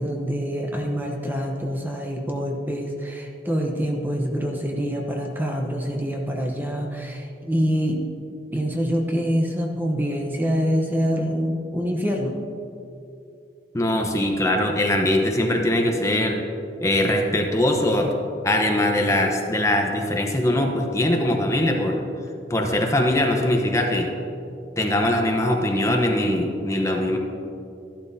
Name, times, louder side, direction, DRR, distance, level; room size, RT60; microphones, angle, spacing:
voice 1, 0.0-8.0 8.5-12.4, equal, 10° right, 1 dB, 0.8 m, -25 dB
voice 2, 13.7-16.4 16.8-18.1 18.4-22.0 22.5-24.1 24.8-27.2, left 1 dB, 15° left, 2 dB, 0.9 m, -21 dB
13.5 x 12.0 x 2.8 m, 2.6 s
head